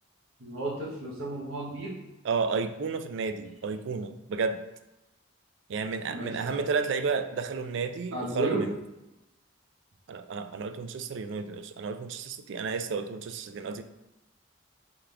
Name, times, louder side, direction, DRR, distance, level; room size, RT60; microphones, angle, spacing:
voice 1, 0.4-2.0 6.1-6.6 8.1-8.7, right 2 dB, 80° right, -5 dB, 1.3 m, -33 dB
voice 2, 2.2-4.6 5.7-8.7 10.1-13.8, right 5 dB, 60° right, 9 dB, 0.3 m, -32 dB
3.6 x 3.4 x 3.4 m, 0.98 s
head